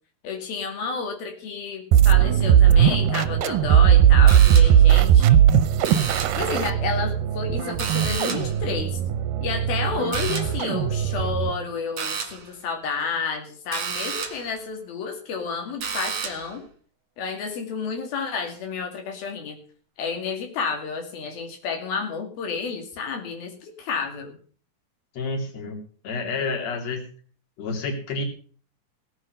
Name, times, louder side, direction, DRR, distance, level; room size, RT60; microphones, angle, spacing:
voice 1, 0.2-5.4 6.4-9.0 9.4-16.6 17.2-19.6 20.0-24.3, left 5 dB, 90° left, 3 dB, 4.3 m, -30 dB
sound 1, 1.9-11.6, right 10 dB, 75° right, 2.3 m, -18 dB
sound 2, 4.3-4.9 5.8-6.5 7.8-8.6 10.1-10.7 12.0-12.5 13.7-14.5 15.8-16.5, right 6 dB, 50° right, 2.6 m, -31 dB
voice 2, 25.1-25.8 26.0-27.0 27.6-28.2, left 3 dB, 50° left, 3 dB, 4.1 m, -29 dB
18.0 x 8.3 x 6.7 m, 0.44 s
omnidirectional pair, 4.1 m